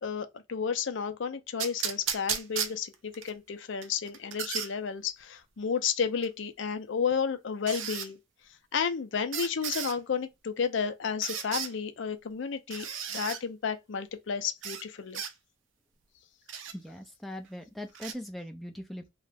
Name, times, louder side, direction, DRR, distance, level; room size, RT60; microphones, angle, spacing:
voice 1, 0.0-8.2 8.7-15.2, left 6 dB, 70° left, 0.5 m, -32 dB
sound 1, 1.6-3.3 3.8-4.7 6.2-6.3 7.7-8.1 9.3-10.0 11.2-11.7 12.7-13.4 14.6-14.8 15.1-15.3 16.5-16.7 17.9-18.1, right 8 dB, 75° right, 0.5 m, -34 dB
voice 2, 16.7-19.1, left 1 dB, ahead, 0.3 m, -40 dB
2.3 x 2.1 x 3.2 m
head